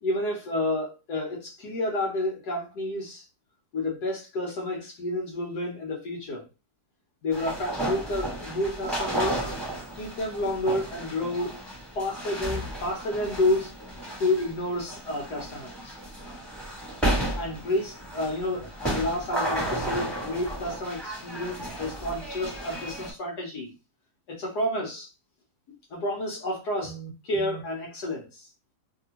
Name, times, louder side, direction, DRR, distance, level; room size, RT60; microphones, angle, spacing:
voice 1, 0.0-3.2 3.7-6.5 7.2-9.4 9.9-11.6 12.0-13.7 14.2-16.0 17.0-23.7 24.3-25.1 25.9-28.5, left 1 dB, 65° left, 1.3 m, -30 dB
sound 1, 7.3-23.1, right 1 dB, ahead, 1.2 m, -33 dB
2.9 x 2.7 x 2.8 m
omnidirectional pair, 2.0 m